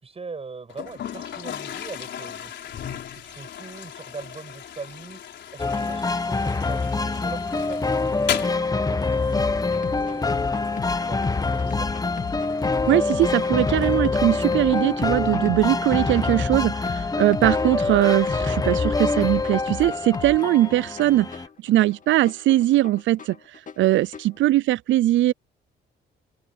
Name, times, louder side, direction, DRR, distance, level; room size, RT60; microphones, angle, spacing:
voice 1, 0.0-5.2 5.5-10.7 11.0-11.9, right 4 dB, 30° right, 7.4 m, -41 dB
Toilet flush, 0.7-17.7, left 9 dB, 65° left, 4.5 m, -39 dB
Hide My Time, 5.6-21.5, left 3 dB, 20° left, 1.1 m, -25 dB
sound 1, 9.4-24.4, left 6 dB, 40° left, 2.5 m, -37 dB
voice 2, 12.9-21.3 21.6-23.4 23.8-25.3, right 15 dB, 70° right, 0.4 m, -21 dB
open air
cardioid pair, 90°, 20 cm